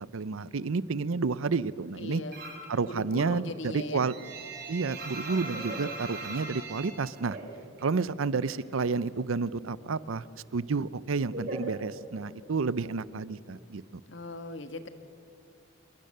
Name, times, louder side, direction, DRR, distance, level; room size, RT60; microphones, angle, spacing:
voice 1, 0.1-2.2 2.7-4.1 4.7-7.4 7.8-10.2 10.5-14.0, right 4 dB, 85° right, 18 dB, 0.6 m, -30 dB
voice 2, 2.0-2.4 2.8-4.1 14.1-14.9, left 2 dB, 65° left, 9 dB, 1.5 m, -39 dB
sound 1, 2.3-2.8 3.1-8.0 8.2-9.3 9.6-12.4, right 2 dB, 50° right, 4.3 m, -40 dB
27.0 x 22.5 x 6.6 m, 2.5 s
head